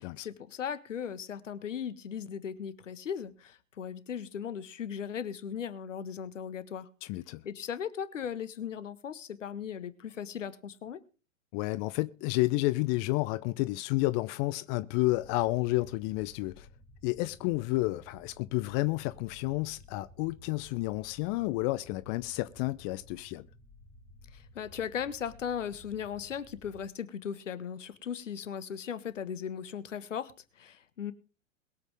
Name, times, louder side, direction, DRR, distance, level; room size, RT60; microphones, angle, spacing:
voice 1, 0.0-6.9 7.4-11.0 24.3-31.1, left 8 dB, 75° left, 1.6 m, -38 dB
voice 2, 7.0-7.4 11.5-16.7 17.0-23.5, left 20 dB, 40° left, 0.7 m, -30 dB
sound 1, 15.1-26.9, left 1 dB, 5° right, 4.5 m, -56 dB
22.0 x 8.1 x 3.5 m
figure-of-eight pair, 100°, 38 cm